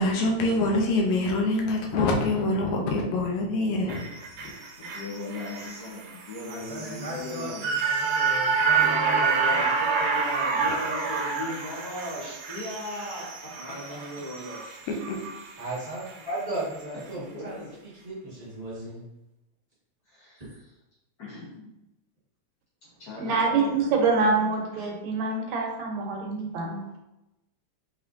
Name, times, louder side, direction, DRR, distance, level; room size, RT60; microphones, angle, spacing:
voice 1, 0.0-4.0 4.4-4.5 15.1-15.2, left 2 dB, 80° left, 0 dB, 2.1 m, -25 dB
sound 1, 3.9-16.2 16.6-16.7, right 5 dB, 90° right, 2.0 m, -28 dB
voice 2, 4.8-7.6 8.8-13.3 17.3-17.7 20.1-20.4 21.2-21.7 23.0-23.9, left 1 dB, 65° left, -9 dB, 1.0 m, -37 dB
voice 3, 6.5-9.2 9.5-9.6 15.6-19.0 20.4-20.5 24.8-24.9, right 1 dB, 35° right, -9 dB, 0.6 m, -37 dB
voice 4, 8.5-9.8 13.5-14.6, equal, 40° left, -11 dB, 1.8 m, -39 dB
voice 5, 23.2-26.8, right 4 dB, 75° right, 0 dB, 2.0 m, -25 dB
5.8 x 3.1 x 2.5 m, 0.93 s
omnidirectional pair, 3.3 m